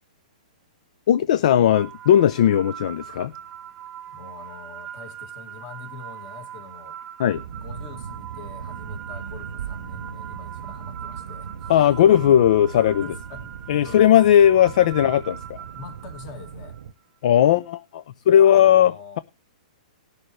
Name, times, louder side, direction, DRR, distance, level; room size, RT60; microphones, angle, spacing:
voice 1, 1.1-3.3 7.2-7.4 11.7-13.1 13.7-15.6 17.2-19.2, left 10 dB, 55° left, 0.5 m, -17 dB
sound 1, 1.7-16.8, right 10 dB, 25° right, 0.7 m, -41 dB
voice 2, 4.1-7.0 7.5-12.4 12.7-13.6 13.8-14.2 15.7-16.8 18.4-19.2, left 5 dB, 40° left, 2.4 m, -43 dB
sound 2, 7.3-16.9, right 7 dB, 70° right, 0.7 m, -38 dB
19.0 x 6.7 x 3.2 m
hypercardioid pair, 150°, 4 cm